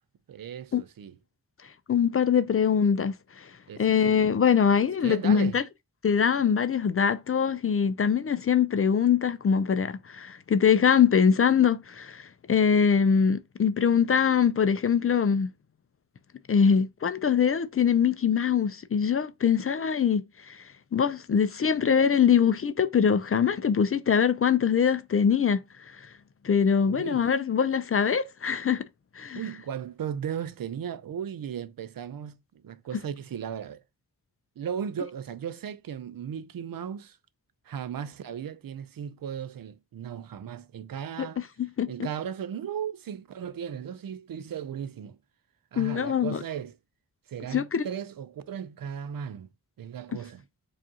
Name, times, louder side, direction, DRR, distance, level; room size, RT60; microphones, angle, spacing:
voice 1, 0.3-1.2 3.7-4.3 5.0-5.6 26.9-27.3 29.3-32.4 32.6-33.8 34.6-37.2 37.7-41.5 41.9-45.2 45.7-46.8 47.3-49.5 49.8-50.4, right 8 dB, 60° right, 0.5 m, -36 dB
voice 2, 1.9-3.5 3.8-5.6 6.0-15.5 16.5-20.6 20.9-25.6 26.4-28.8 29.2-29.4 41.2-41.3 41.8-41.9 45.8-46.4 47.5-47.9, left 7 dB, 35° left, 0.4 m, -23 dB
4.8 x 2.5 x 2.7 m
cardioid pair, 50°, 39 cm